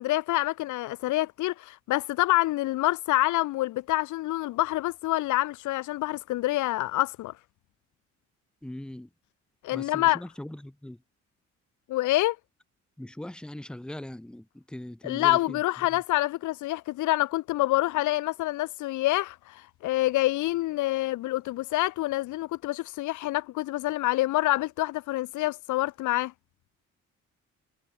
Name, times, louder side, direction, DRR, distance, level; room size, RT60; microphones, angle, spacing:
voice 1, 0.0-7.3 9.6-10.2 11.9-12.4 15.0-26.3, left 17 dB, 75° left, 0.5 m, -27 dB
voice 2, 8.6-9.1 9.7-11.0 13.0-15.6 15.9-16.0, left 1 dB, 5° left, 0.8 m, -40 dB
cardioid pair, 90°, 30 cm